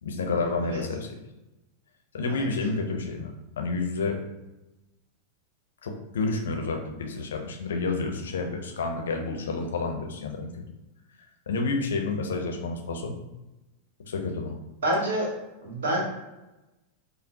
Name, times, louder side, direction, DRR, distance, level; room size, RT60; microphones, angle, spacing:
voice 1, 0.0-1.1 2.1-4.2 5.8-10.5 11.5-13.1 14.0-14.5, left 3 dB, 65° left, 3 dB, 0.5 m, -29 dB
voice 2, 14.8-15.3 15.6-16.0, right 1 dB, 65° right, -1 dB, 1.1 m, -27 dB
5.3 x 2.0 x 2.7 m, 1.0 s
figure-of-eight pair, 90°, 0 cm